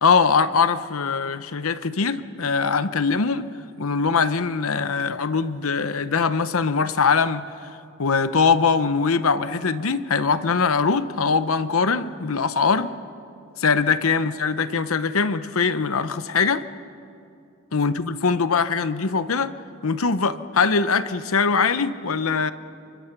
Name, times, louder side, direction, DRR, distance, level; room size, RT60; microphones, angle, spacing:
voice 1, 0.0-3.5 3.8-7.4 8.0-12.9 13.6-16.6 17.7-19.5 19.8-22.5, left 5 dB, 85° left, 13 dB, 0.8 m, -22 dB
29.5 x 24.5 x 6.0 m, 2.6 s
head